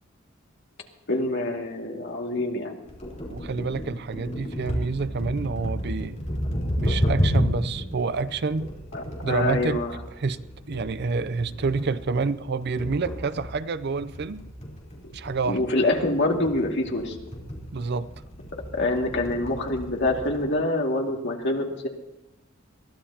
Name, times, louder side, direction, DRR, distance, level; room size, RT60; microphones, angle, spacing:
voice 1, 1.1-2.8 8.9-10.0 15.0-15.1 15.5-17.2 18.7-21.9, left 2 dB, 60° left, 2.3 m, -26 dB
sound 1, 2.9-20.5, equal, 35° left, 3.9 m, -32 dB
voice 2, 3.3-6.2 6.7-8.7 9.2-9.8 10.2-10.4 10.7-14.4 15.1-15.6 17.7-18.1, right 4 dB, 55° right, 0.5 m, -28 dB
22.5 x 15.0 x 2.9 m
head